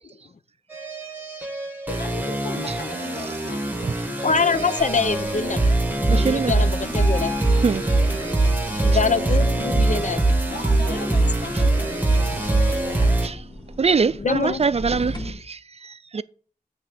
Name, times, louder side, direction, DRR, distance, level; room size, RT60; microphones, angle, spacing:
sound 1, 0.7-13.3, right 2 dB, 10° right, 1.5 m, -22 dB
voice 1, 1.9-3.9 10.5-13.2, left 3 dB, 85° left, 1.4 m, -37 dB
voice 2, 4.2-5.7 6.1-7.4 8.8-10.2 10.9-11.0 14.1-14.6, left 5 dB, 50° left, 0.5 m, -24 dB
sound 2, 4.8-15.3, equal, 25° left, 1.4 m, -39 dB
voice 3, 6.1-6.5 7.6-7.8 13.2-13.3 13.8-16.2, right 5 dB, 40° right, 0.4 m, -23 dB
8.3 x 3.6 x 6.6 m
wide cardioid pair, 65°, 16 cm